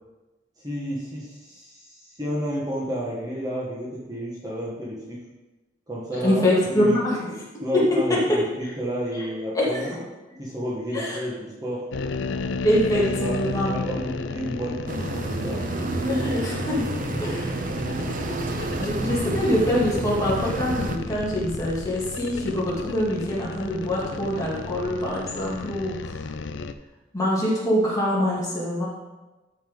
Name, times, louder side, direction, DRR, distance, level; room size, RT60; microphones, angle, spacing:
voice 1, 0.6-5.2 5.9-6.4 6.7-7.0 7.6-9.9 10.4-11.8 12.9-13.4 13.7-15.6 17.0-17.6, equal, 20° right, -5 dB, 1.5 m, -31 dB
voice 2, 6.2-7.3 7.7-7.9 8.3-8.7 9.2-9.3 9.5-10.0 10.9-11.2 12.6-13.8 16.1-16.9 17.2-17.5 18.5-26.1 27.1-28.9, equal, 20° left, -7 dB, 2.7 m, -24 dB
sound 1, 11.9-26.7, left 4 dB, 70° left, 0.5 m, -33 dB
sound 2, 14.9-21.0, right 2 dB, 45° right, 0.7 m, -29 dB
12.5 x 5.7 x 3.9 m, 1.1 s
head